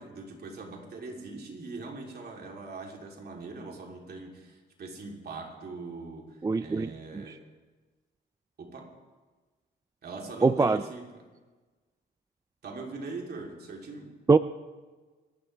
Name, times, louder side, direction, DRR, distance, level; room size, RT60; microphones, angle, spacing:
voice 1, 0.0-7.4 8.6-8.9 10.0-11.2 12.6-14.1, right 3 dB, 55° right, 0 dB, 3.3 m, -42 dB
voice 2, 6.4-7.2 10.4-10.8 14.3-14.4, right 4 dB, 15° right, 13 dB, 0.4 m, -23 dB
27.0 x 12.5 x 3.4 m, 1.3 s
cardioid pair, 90°, 20 cm